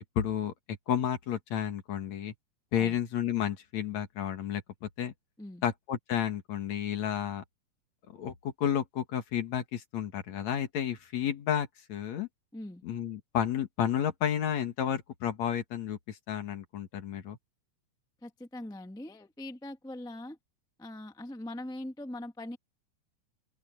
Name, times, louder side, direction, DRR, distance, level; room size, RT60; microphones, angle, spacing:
voice 1, 0.2-0.5 0.9-2.3 2.7-5.1 5.6-7.4 8.2-12.3 12.8-17.4, left 9 dB, 60° left, 2.8 m, -31 dB
voice 2, 12.5-12.8 18.2-20.4 20.8-22.6, left 1 dB, 5° left, 0.8 m, -41 dB
open air
omnidirectional pair, 3.6 m